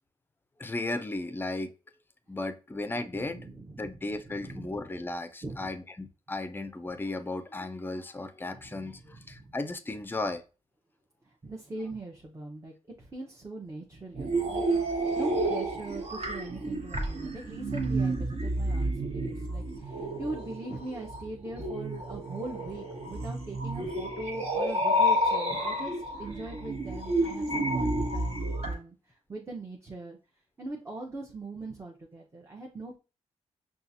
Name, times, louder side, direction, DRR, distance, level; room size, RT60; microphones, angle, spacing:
voice 1, 0.6-1.7 2.3-3.4 3.7-10.4, left 2 dB, 15° left, 0.5 m, -35 dB
voice 2, 3.1-4.7 5.4-5.7 8.5-9.6 11.2-30.2 30.6-33.0, right 2 dB, 20° right, 0.7 m, -41 dB
sound 1, 14.1-28.7, right 1 dB, 55° right, 1.3 m, -30 dB
5.6 x 2.4 x 2.7 m
cardioid pair, 80°, 12 cm